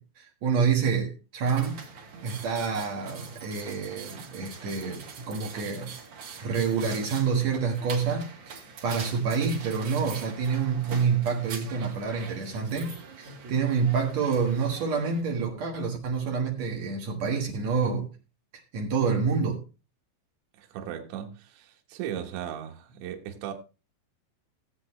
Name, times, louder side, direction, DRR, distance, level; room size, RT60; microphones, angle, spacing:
voice 1, 0.0-1.8 2.2-5.9 6.4-18.1 18.7-19.6, right 5 dB, 90° right, 1.5 m, -28 dB
sound 1, 1.4-15.2, right 5 dB, 50° right, 2.3 m, -43 dB
voice 2, 20.6-23.5, right 10 dB, 70° right, 3.3 m, -37 dB
16.5 x 8.5 x 3.2 m
omnidirectional pair, 5.9 m